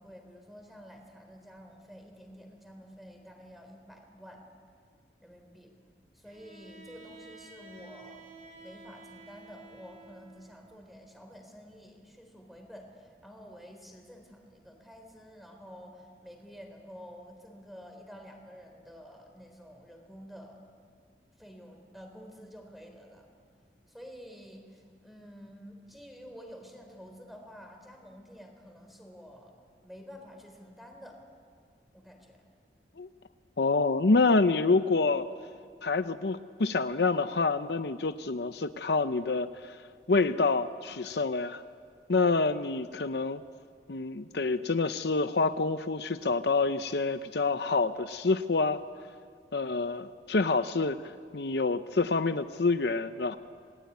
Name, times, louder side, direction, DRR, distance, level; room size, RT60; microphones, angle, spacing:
voice 1, 0.0-4.4 5.2-5.7 6.1-20.7 21.4-23.3 23.9-29.5 29.8-31.2 31.9-32.4, equal, ahead, 3 dB, 3.8 m, -50 dB
Bowed string instrument, 6.2-10.5, right 2 dB, 45° right, 2.8 m, -51 dB
voice 2, 33.6-35.3 35.8-39.8 40.1-41.6 42.1-43.4 43.9-48.8 49.5-53.4, left 3 dB, 65° left, 10 dB, 0.7 m, -27 dB
27.5 x 20.0 x 9.5 m, 2.1 s
head